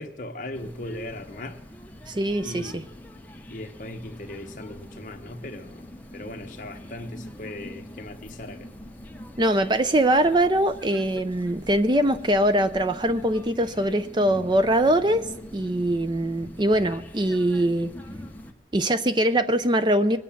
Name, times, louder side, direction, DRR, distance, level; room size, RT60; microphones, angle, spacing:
voice 1, 0.0-1.6 2.4-2.8 3.5-5.9 6.1-8.7, left 1 dB, 45° left, 5 dB, 1.2 m, -38 dB
sound 1, 0.5-18.5, equal, 10° left, 0.9 m, -43 dB
voice 2, 2.1-2.8 9.4-17.9 18.7-20.2, right 1 dB, 25° right, 11 dB, 0.5 m, -22 dB
20.5 x 9.3 x 7.3 m, 0.90 s
head